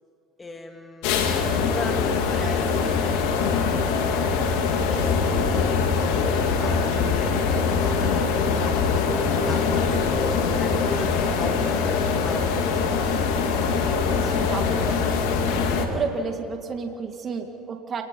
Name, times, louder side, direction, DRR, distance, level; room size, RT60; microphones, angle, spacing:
voice 1, 0.4-5.7 6.1-13.7 14.5-14.8, left 2 dB, 20° left, 5 dB, 2.0 m, -38 dB
sound 1, 1.0-15.9, left 5 dB, 80° left, 2.3 m, -23 dB
voice 2, 14.2-15.0 15.8-18.0, right 5 dB, 40° right, 4 dB, 2.1 m, -31 dB
28.5 x 20.5 x 5.5 m, 2.6 s
supercardioid pair, 85°, 0 cm